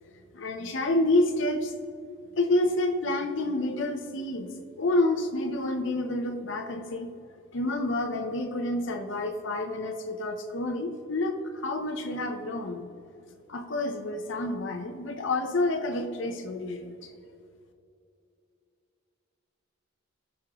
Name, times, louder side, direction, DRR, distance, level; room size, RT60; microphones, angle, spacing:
voice 1, 0.3-1.7 2.4-4.5 4.8-7.1 7.5-12.9 13.5-17.0, left 2 dB, 60° left, 4 dB, 0.7 m, -28 dB
17.0 x 6.3 x 3.0 m, 2.6 s
head